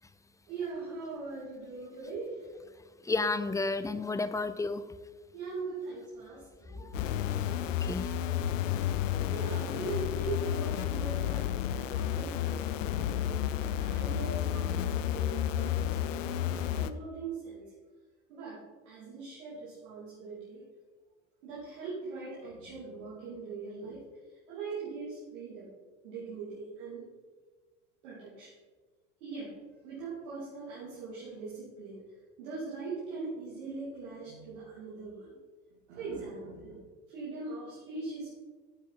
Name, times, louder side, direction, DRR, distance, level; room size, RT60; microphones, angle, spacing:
voice 1, 0.5-2.4 5.3-6.9 9.1-13.3 13.7-17.6 18.3-20.6 21.4-24.0 24.5-25.7 26.0-27.0 28.0-28.5 29.2-29.5 29.8-32.0 32.4-35.3 35.9-36.8 37.1-38.4, right 4 dB, 75° right, -9 dB, 2.8 m, -41 dB
voice 2, 3.1-4.8 6.8-6.9 7.8-8.1, left 3 dB, 10° left, 13 dB, 0.5 m, -31 dB
sound 1, 6.9-16.9, left 11 dB, 85° left, 0.5 m, -31 dB
8.8 x 8.2 x 4.1 m, 1.4 s
hypercardioid pair, 70°, 37 cm